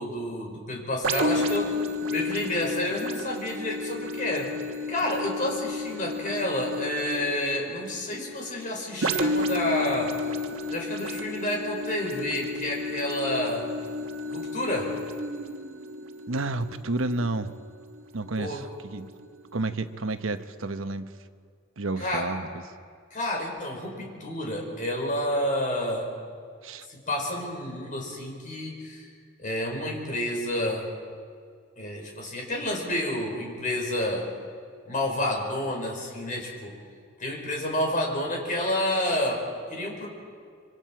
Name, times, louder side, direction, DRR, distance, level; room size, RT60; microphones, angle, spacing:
voice 1, 0.0-1.7 2.1-4.6 4.9-10.1 10.7-13.7 14.3-14.9 18.4-18.6 22.0-22.3 23.1-26.1 26.9-29.1 29.4-30.9 31.8-34.3 34.9-36.7 37.2-39.4 39.7-40.1, left 1 dB, 40° left, 0 dB, 5.0 m, -29 dB
sound 1, 1.0-18.6 19.1-19.2, left 1 dB, 90° right, 1.3 m, -32 dB
voice 2, 16.3-17.5 18.1-19.1 19.5-21.1 21.8-22.5 26.6-26.9, right 2 dB, 70° right, 9 dB, 1.0 m, -30 dB
26.5 x 25.0 x 4.6 m, 2.1 s
head